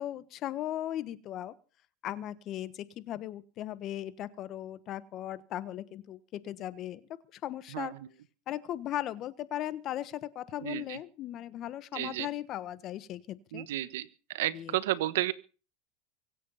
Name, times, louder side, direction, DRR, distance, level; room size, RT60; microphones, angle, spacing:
voice 1, 0.0-1.5 2.0-7.0 7.3-7.9 8.5-13.7 14.5-14.8, left 12 dB, 45° left, 15 dB, 1.3 m, -37 dB
voice 2, 10.6-11.0 11.9-12.3 13.5-14.1 14.3-15.3, right 15 dB, 80° right, 15 dB, 1.2 m, -32 dB
24.0 x 8.6 x 5.7 m, 0.37 s
supercardioid pair, 115°, 0 cm